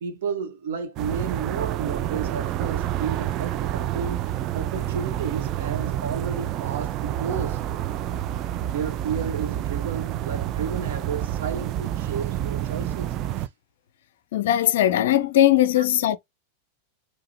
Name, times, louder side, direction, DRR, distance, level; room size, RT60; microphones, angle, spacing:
voice 1, 0.0-4.2 4.5-7.6 8.7-13.5 15.8-15.9, right 6 dB, 55° right, 1.0 m, -32 dB
sound 1, 1.0-13.5, right 12 dB, 35° right, 0.4 m, -28 dB
voice 2, 14.3-16.2, left 12 dB, 55° left, 0.4 m, -19 dB
4.8 x 2.8 x 2.9 m
figure-of-eight pair, 90°, 0 cm